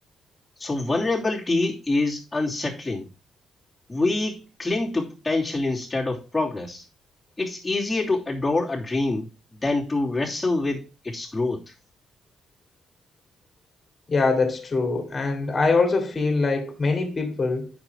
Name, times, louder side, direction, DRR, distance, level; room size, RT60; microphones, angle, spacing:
voice 1, 0.6-3.1 3.9-6.8 7.4-9.3 9.6-11.6, left 2 dB, 15° left, 2.9 m, -26 dB
voice 2, 14.1-17.7, left 3 dB, 30° left, 2.5 m, -23 dB
8.7 x 6.2 x 4.6 m
cardioid pair, 90°, 0 cm